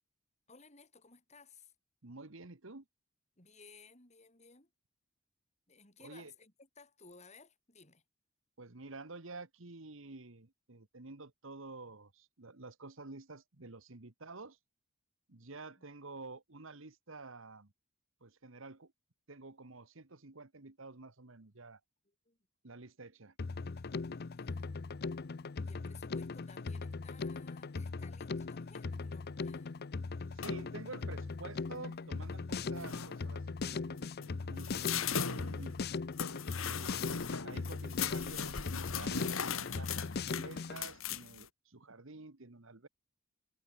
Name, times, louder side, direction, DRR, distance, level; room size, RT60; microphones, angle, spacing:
voice 1, 0.5-1.7 3.4-4.7 5.7-8.0 15.8-15.9 22.0-22.4 24.1-24.9 25.6-29.7, left 4 dB, 35° left, 6.2 m, -59 dB
voice 2, 2.0-2.8 6.0-6.3 8.6-14.6 15.3-17.7 18.2-18.9 19.3-21.8 22.6-23.3 30.3-35.8 36.2-36.3 36.7-42.9, right 3 dB, 65° right, 1.6 m, -50 dB
Drum kit, 23.4-40.8, left 4 dB, 50° left, 0.6 m, -39 dB
sound 1, 30.4-30.7 32.4-32.5 32.7-33.2 34.0-41.5, left 7 dB, 75° left, 2.0 m, -39 dB
head